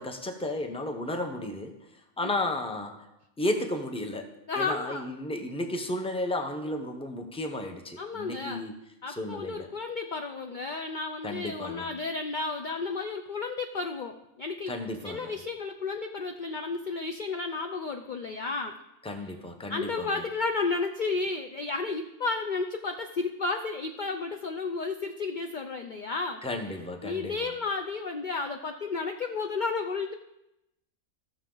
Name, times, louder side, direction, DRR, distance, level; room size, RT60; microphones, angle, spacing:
voice 1, 0.0-1.7 2.2-3.1 3.4-8.7 9.1-9.7 11.2-11.9 14.7-15.3 19.0-20.1 26.4-27.4, left 1 dB, 5° left, 4 dB, 0.7 m, -33 dB
voice 2, 4.5-5.1 8.0-8.6 9.0-14.8 15.0-18.8 19.7-26.4 27.0-30.1, left 4 dB, 55° left, 5 dB, 0.5 m, -32 dB
15.0 x 6.4 x 3.9 m, 0.89 s
omnidirectional pair, 1.5 m